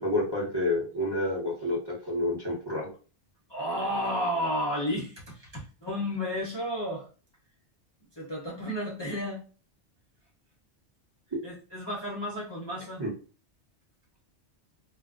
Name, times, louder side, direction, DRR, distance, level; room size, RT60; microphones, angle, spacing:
voice 1, 0.0-2.9 13.0-13.1, left 1 dB, 25° right, -4 dB, 0.7 m, -29 dB
voice 2, 3.5-7.1 8.2-9.4 11.4-13.0, equal, 30° left, -5 dB, 0.5 m, -32 dB
2.2 x 2.0 x 3.6 m, 0.37 s
omnidirectional pair, 1.2 m